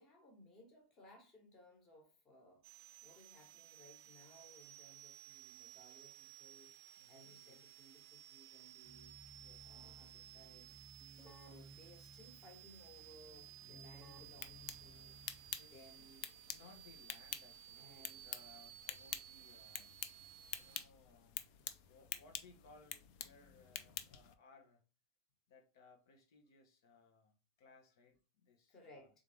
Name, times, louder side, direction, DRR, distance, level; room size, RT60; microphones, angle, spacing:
voice 1, 0.0-2.6 3.0-6.7 7.1-9.1 9.6-10.7 11.1-15.2 15.7-16.3 17.8-18.3 28.7-29.2, left 1 dB, 25° left, 1.3 m, -62 dB
sound 1, 2.6-20.9, right 13 dB, 65° right, 0.4 m, -58 dB
voice 2, 7.0-7.7 9.3-10.4 11.1-11.4 13.6-13.9 15.6-16.1 16.4-20.0 20.6-21.5 21.8-24.8 25.5-29.1, left 3 dB, 80° left, 1.0 m, -65 dB
Keyboard (musical), 8.8-15.7, right 2 dB, ahead, 1.3 m, -60 dB
sound 2, 14.2-24.3, left 10 dB, 50° left, 0.5 m, -49 dB
3.7 x 3.5 x 3.4 m
supercardioid pair, 170°, 2 cm